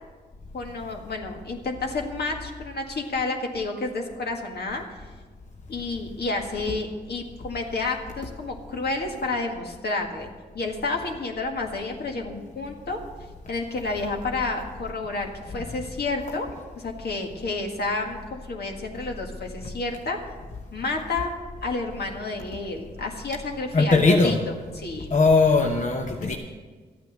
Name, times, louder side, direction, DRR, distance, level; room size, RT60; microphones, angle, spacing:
voice 1, 0.5-5.0 5.7-10.3 10.5-13.0 13.5-16.5 16.8-20.2 20.7-21.3 21.6-24.4 24.8-25.1 26.2-26.4, left 3 dB, 65° left, 2 dB, 1.8 m, -30 dB
voice 2, 23.7-24.4 25.1-26.3, left 3 dB, 45° left, 2 dB, 1.0 m, -20 dB
13.0 x 8.9 x 6.5 m, 1.4 s
cardioid pair, 55°, 18 cm